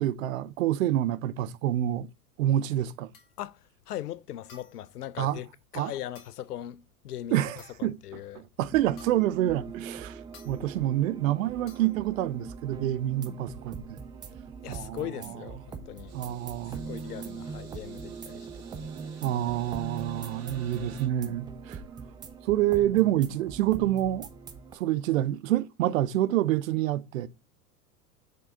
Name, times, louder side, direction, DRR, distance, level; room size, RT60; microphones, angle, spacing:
voice 1, 0.0-2.1 2.4-3.1 5.2-5.4 5.7-5.9 7.3-8.0 8.3-10.2 10.4-13.8 14.7-15.3 16.1-16.8 19.2-21.8 22.4-24.3 24.7-27.3, right 13 dB, 60° right, 0.7 m, -27 dB
sound 1, 3.1-3.4 4.5-4.9 6.1-6.5 7.6-8.0 9.0-9.4 10.3-10.6 11.7-12.0, left 5 dB, 40° left, 2.1 m, -54 dB
voice 2, 3.9-5.5 5.7-7.4 7.8-8.4 14.6-16.1 16.9-18.5, left 12 dB, 80° left, 0.6 m, -39 dB
sound 2, 8.6-24.7, right 5 dB, 10° right, 0.4 m, -41 dB
sound 3, 16.1-21.1, right 6 dB, 30° right, 2.0 m, -50 dB
6.6 x 3.8 x 3.9 m
figure-of-eight pair, 95°, 46 cm